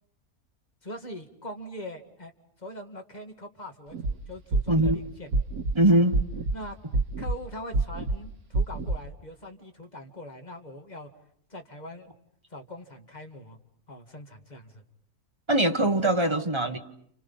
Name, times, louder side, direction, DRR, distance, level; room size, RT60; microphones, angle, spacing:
voice 1, 0.8-2.3 2.6-5.3 5.9-6.0 6.5-6.8 7.2-11.1 11.5-12.1 12.5-13.6 13.9-14.8, left 1 dB, 30° left, 2.1 m, -42 dB
sound 1, 3.9-4.1 4.5-4.9 5.3-5.7 6.1-6.5 6.9-7.4 7.7-8.2 8.5-9.0, right 3 dB, 75° right, 1.9 m, -26 dB
voice 2, 4.7-5.0 5.7-6.2 15.5-16.8, right 1 dB, 20° right, 1.4 m, -22 dB
30.0 x 29.0 x 5.6 m
omnidirectional pair, 1.6 m